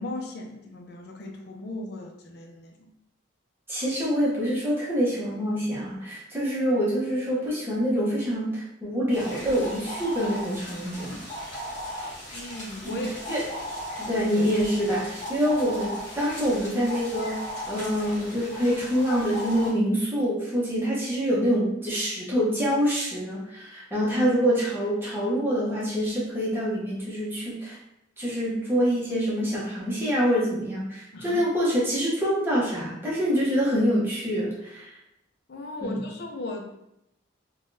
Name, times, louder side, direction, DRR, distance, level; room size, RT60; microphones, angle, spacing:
voice 1, 0.0-2.9 12.3-13.2 31.1-31.4 35.5-36.7, left 2 dB, 55° left, 2 dB, 0.4 m, -36 dB
voice 2, 3.7-11.2 12.8-13.4 14.0-17.4 17.7-27.8 28.2-34.9 35.8-36.1, equal, 10° right, -7 dB, 0.7 m, -26 dB
sound 1, 9.1-19.7, equal, 35° left, 1.2 m, -37 dB
3.4 x 2.2 x 2.6 m, 0.83 s
head